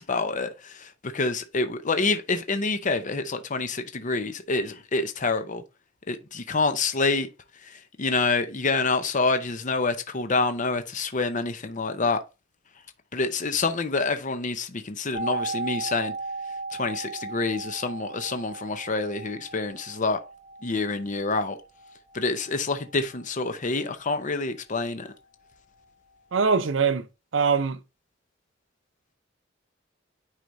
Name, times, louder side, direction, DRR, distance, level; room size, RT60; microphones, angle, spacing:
voice 1, 0.0-5.6 6.1-7.3 7.6-12.2 13.1-16.1 16.8-20.2 20.6-21.6 22.1-25.1, left 3 dB, 40° left, 0.7 m, -27 dB
sound 1, 15.1-24.9 25.1-25.2, right 3 dB, 35° right, 2.7 m, -37 dB
voice 2, 26.3-27.1 27.3-27.8, right 5 dB, 75° right, 0.7 m, -22 dB
9.3 x 4.9 x 2.7 m
head